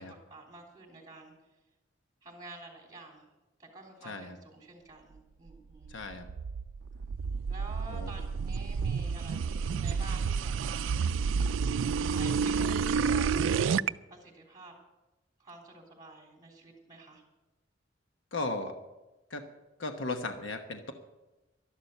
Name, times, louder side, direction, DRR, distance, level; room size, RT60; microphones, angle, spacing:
voice 1, 0.0-1.3 2.2-3.3 3.6-5.9 7.5-11.0 12.1-14.7 15.4-17.2, right 2 dB, 20° right, 1 dB, 3.4 m, -49 dB
voice 2, 4.0-4.4 5.9-6.3 7.9-8.1 18.3-18.7 19.3-19.4 19.8-20.9, left 2 dB, 80° left, 6 dB, 1.1 m, -36 dB
sound 1, 5.8-13.9, right 6 dB, 90° right, 0.4 m, -30 dB
12.5 x 11.5 x 6.7 m, 1.1 s
head